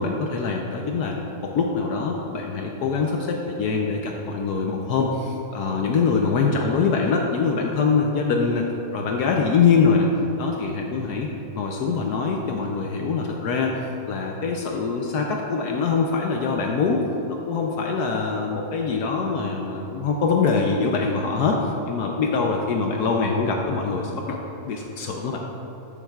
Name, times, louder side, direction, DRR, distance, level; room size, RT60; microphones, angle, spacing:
voice 1, 0.0-8.7 8.9-10.1 10.4-11.3 11.5-13.8 14.1-17.0 17.3-21.6 21.9-25.4, left 5 dB, 75° left, 0 dB, 1.1 m, -23 dB
12.0 x 7.3 x 2.3 m, 2.9 s
omnidirectional pair, 1.8 m